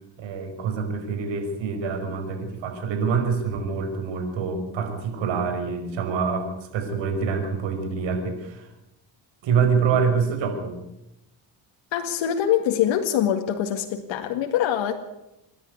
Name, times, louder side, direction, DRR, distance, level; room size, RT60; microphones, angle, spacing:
voice 1, 0.2-8.7 9.4-10.8, right 5 dB, 75° right, 5 dB, 5.6 m, -26 dB
voice 2, 11.9-14.9, left 10 dB, 75° left, 4 dB, 2.2 m, -24 dB
27.0 x 11.5 x 9.6 m, 0.89 s
cardioid pair, 95°, 45 cm